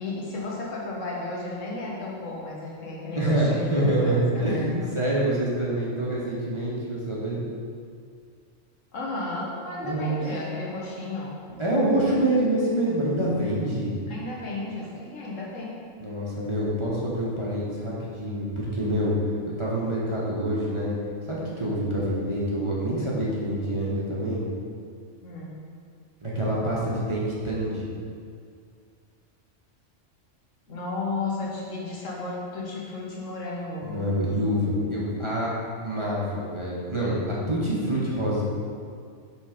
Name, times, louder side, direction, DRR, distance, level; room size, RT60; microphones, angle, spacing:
voice 1, 0.0-5.0 8.9-11.4 14.1-15.8 25.2-25.5 30.7-34.0, left 2 dB, 85° left, -4 dB, 1.6 m, -33 dB
voice 2, 3.1-7.4 9.8-10.2 11.6-13.9 16.0-19.2 19.6-20.9 21.3-24.4 26.2-27.9 33.8-35.5 35.8-38.4, right 1 dB, 25° right, -6 dB, 1.0 m, -26 dB
6.1 x 3.8 x 5.0 m, 2.2 s
omnidirectional pair, 1.3 m